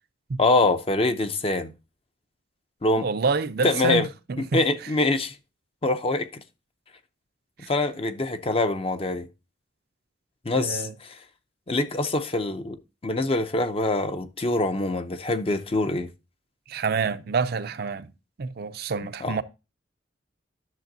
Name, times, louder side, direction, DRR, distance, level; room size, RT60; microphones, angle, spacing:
voice 1, 0.4-1.7 2.8-3.1 3.6-4.1 4.4-5.4 5.8-6.4 7.7-9.3 10.4-11.2 11.7-12.8 13.0-16.1 19.2-19.4, left 2 dB, 30° left, 0.5 m, -24 dB
voice 2, 2.9-4.0 4.3-4.6 7.6-7.7 10.5-10.9 16.7-18.1 18.4-19.4, right 4 dB, 50° right, 0.5 m, -27 dB
10.5 x 6.7 x 2.6 m
head